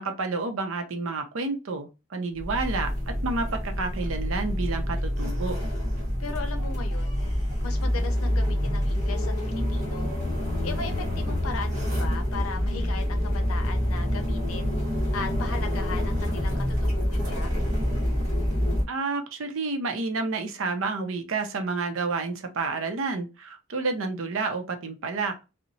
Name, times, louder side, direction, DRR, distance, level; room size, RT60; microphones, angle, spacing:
voice 1, 0.0-5.6 18.9-25.4, right 3 dB, 75° right, 0.5 m, -30 dB
sound 1, 2.4-18.8, equal, 35° right, 1.1 m, -27 dB
voice 2, 6.2-7.2 7.6-10.2 10.6-14.7 15.1-17.5, left 4 dB, 90° left, 0.6 m, -38 dB
2.8 x 2.0 x 2.6 m
head